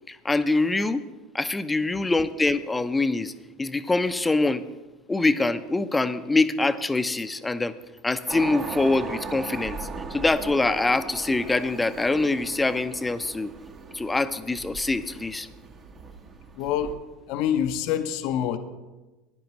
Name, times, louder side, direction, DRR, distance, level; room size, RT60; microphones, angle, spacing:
voice 1, 0.1-1.0 1.3-3.3 3.6-4.6 5.1-7.7 8.0-13.5 13.9-15.5, left 3 dB, 15° left, 11 dB, 0.7 m, -24 dB
sound 1, 8.3-16.9, right 4 dB, 40° right, 1.3 m, -38 dB
voice 2, 16.6-17.0 17.3-18.6, left 9 dB, 65° left, 9 dB, 0.8 m, -26 dB
16.0 x 10.0 x 3.1 m, 1.1 s
hypercardioid pair, 80°, 0 cm